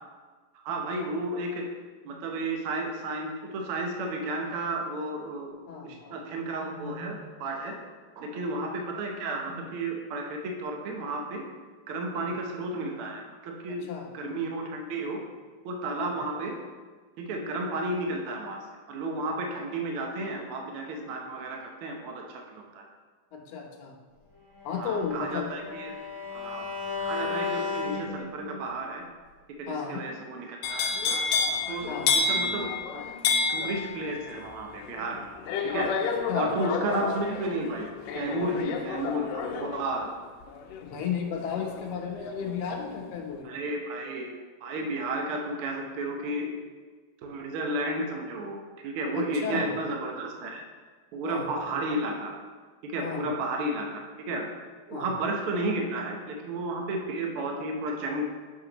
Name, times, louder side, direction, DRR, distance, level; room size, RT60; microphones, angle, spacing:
voice 1, 0.5-1.7 2.0-5.5 5.8-7.8 8.2-11.4 11.9-13.8 14.1-15.2 15.6-16.5 17.2-22.9 24.8-25.9 26.3-26.7 27.0-29.0 29.6-31.2 31.7-33.1 33.5-35.2 35.6-35.9 36.3-40.1 43.4-44.3 44.6-46.5 47.2-50.6 51.1-52.3 52.8-54.0 54.3-54.5 54.9-58.2, right 2 dB, 85° right, 1 dB, 1.2 m, -32 dB
voice 2, 5.7-6.2 8.3-8.5 12.1-12.3 13.7-14.1 16.0-16.2 23.3-23.9 24.6-25.5 29.7-30.0 31.9-32.1 36.3-36.5 40.8-43.6 49.1-49.7 51.2-51.7 53.0-53.2 54.9-55.1, left 6 dB, 65° left, 0 dB, 1.7 m, -34 dB
Bowed string instrument, 24.5-28.7, left 4 dB, 65° right, 3.7 m, -34 dB
sound 1, 30.6-42.6 42.9-43.4, left 5 dB, 85° left, 1.5 m, -30 dB
7.8 x 6.7 x 2.9 m, 1.4 s
omnidirectional pair, 3.7 m